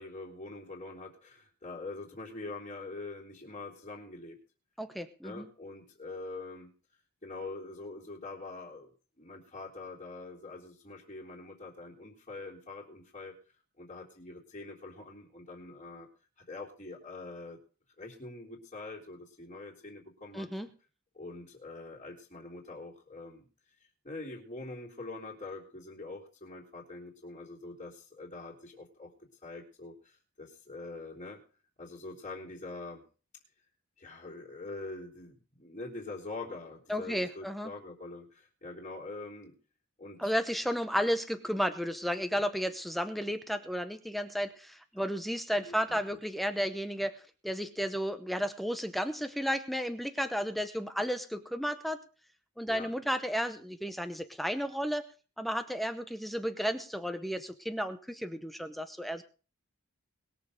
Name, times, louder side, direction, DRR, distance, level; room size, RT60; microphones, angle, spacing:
voice 1, 0.0-4.4 5.2-6.7 7.2-8.9 9.2-13.3 13.8-16.1 16.5-17.6 18.0-20.5 21.1-23.4 24.0-29.1 29.4-31.4 31.8-33.0 34.0-39.5 40.0-40.3 45.7-46.0 52.7-52.9, left 3 dB, 30° left, -8 dB, 3.5 m, -44 dB
voice 2, 4.8-5.5 20.3-20.7 36.9-37.7 40.2-47.2 47.4-52.0 52.6-55.0 55.4-59.2, equal, ahead, 9 dB, 0.8 m, -33 dB
21.0 x 7.1 x 5.2 m, 0.36 s
head